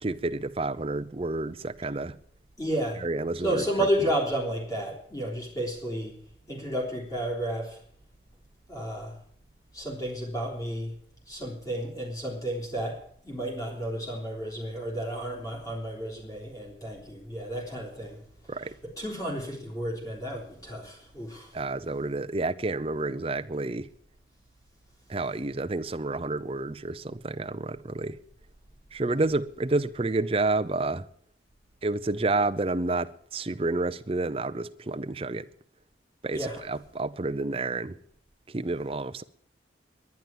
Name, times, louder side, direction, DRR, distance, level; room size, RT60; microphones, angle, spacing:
voice 1, 0.0-2.2 3.0-3.6 18.5-18.7 21.5-23.9 25.1-28.2 28.9-31.0 31.8-35.5 36.2-38.0 38.5-39.2, right 2 dB, 30° right, 0.6 m, -29 dB
voice 2, 2.6-3.0 3.4-6.2 6.5-7.8 8.7-9.2 9.7-10.9 11.3-13.0 13.2-18.2 19.0-21.5 36.3-36.6, right 1 dB, 20° left, 3.5 m, -32 dB
10.5 x 10.5 x 9.5 m
head